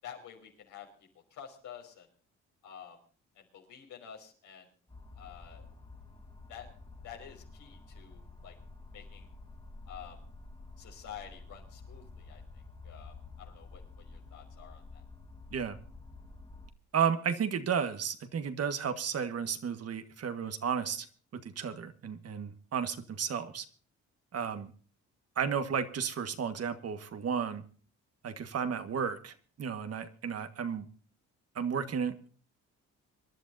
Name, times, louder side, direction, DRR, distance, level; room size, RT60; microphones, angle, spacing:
voice 1, 0.0-0.9 1.3-2.1 2.6-3.0 3.4-4.7 5.2-5.7 6.5-6.7 7.0-8.5 8.9-9.3 9.9-10.2 10.8-15.0, left 9 dB, 85° left, 1 dB, 5.5 m, -49 dB
sound 1, 4.9-16.7, left 3 dB, 20° left, 2.4 m, -50 dB
voice 2, 16.9-21.1 21.3-23.6 24.3-24.7 25.3-27.6 28.2-30.9 31.5-32.3, right 7 dB, 55° right, 9 dB, 1.6 m, -33 dB
26.5 x 11.5 x 2.7 m, 0.42 s
cardioid pair, 90°, 30 cm